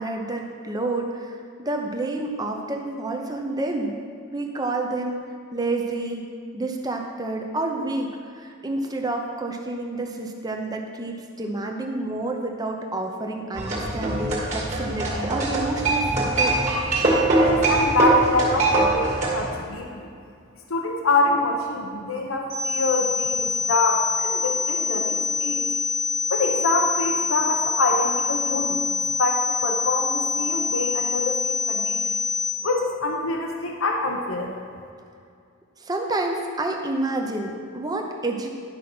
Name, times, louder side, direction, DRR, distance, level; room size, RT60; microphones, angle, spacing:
voice 1, 0.0-3.9 4.3-5.2 5.5-6.2 6.5-16.6 35.8-38.6, right 2 dB, 15° right, 2 dB, 0.8 m, -29 dB
sound 1, 13.5-19.5, right 2 dB, 35° right, 1.9 m, -22 dB
voice 2, 17.4-20.1 20.7-25.7 26.3-28.8 29.2-32.1 32.6-34.5, left 2 dB, 70° left, 2 dB, 0.8 m, -25 dB
sound 2, 22.5-32.5, left 4 dB, 20° left, 1.2 m, -25 dB
10.5 x 5.4 x 6.0 m, 2.4 s
head